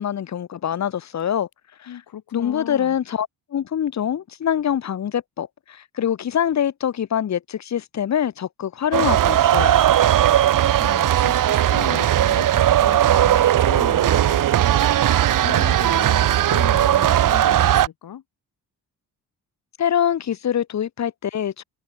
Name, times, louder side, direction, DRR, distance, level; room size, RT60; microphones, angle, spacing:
voice 1, 0.0-1.5 1.8-1.9 2.3-9.8 19.8-21.6, left 9 dB, 45° left, 1.1 m, -24 dB
voice 2, 1.9-3.0 10.8-14.8 15.4-18.2, left 10 dB, 60° left, 2.3 m, -37 dB
sound 1, 8.9-17.9, right 12 dB, 55° right, 0.8 m, -18 dB
wide cardioid pair, 145°, 39 cm